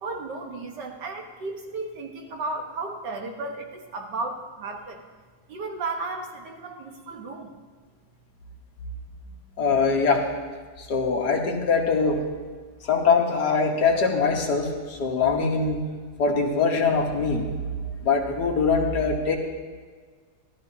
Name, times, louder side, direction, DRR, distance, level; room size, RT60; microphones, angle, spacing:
voice 1, 0.0-5.0 5.5-7.6, right 3 dB, 70° right, 3 dB, 1.9 m, -34 dB
voice 2, 9.6-10.2 10.8-12.2 12.8-15.8 16.2-17.5 17.8-19.4, left 4 dB, 65° left, 2 dB, 1.8 m, -23 dB
16.0 x 12.0 x 2.8 m, 1.5 s
omnidirectional pair, 2.0 m